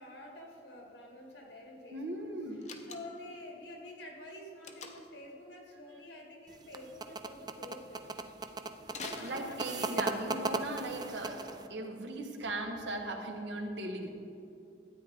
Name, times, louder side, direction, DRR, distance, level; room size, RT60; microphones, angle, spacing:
voice 1, 0.0-2.2 2.8-8.2 9.0-10.5, left 1 dB, 80° left, 0 dB, 1.8 m, -48 dB
voice 2, 1.9-2.6 9.2-14.1, right 2 dB, 85° right, 2 dB, 1.2 m, -38 dB
Slam, 2.6-3.4 4.6-5.2 8.9-10.0, left 5 dB, 40° left, 0.7 m, -46 dB
sound 1, 6.5-11.7, right 3 dB, 25° right, 0.3 m, -37 dB
13.0 x 9.0 x 3.6 m, 2.6 s
head